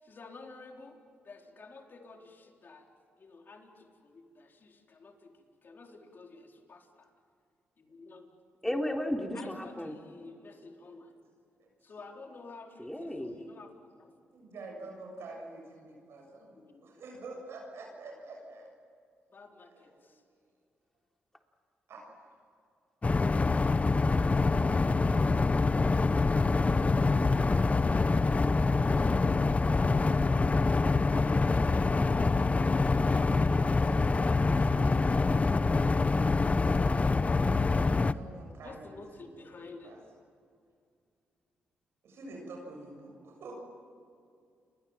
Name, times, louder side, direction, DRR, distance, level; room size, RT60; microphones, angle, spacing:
voice 1, 0.0-1.0 1.2-2.9 3.2-7.1 7.8-8.3 9.3-11.2 11.8-14.1 16.5-16.9 19.3-20.2 31.1-35.9 37.0-37.9 38.6-40.0, left 3 dB, 50° left, 2 dB, 4.2 m, -50 dB
voice 2, 8.6-9.9 12.8-13.4, left 1 dB, 5° left, 3 dB, 3.8 m, -34 dB
voice 3, 14.3-18.7 19.7-20.3 21.9-22.3 38.0-40.0 42.0-43.5, right 2 dB, 75° right, 0 dB, 7.4 m, -47 dB
sound 1, 23.0-38.1, left 3 dB, 30° left, 0.9 m, -25 dB
29.5 x 22.5 x 7.5 m, 2.3 s
supercardioid pair, 60°, 4 cm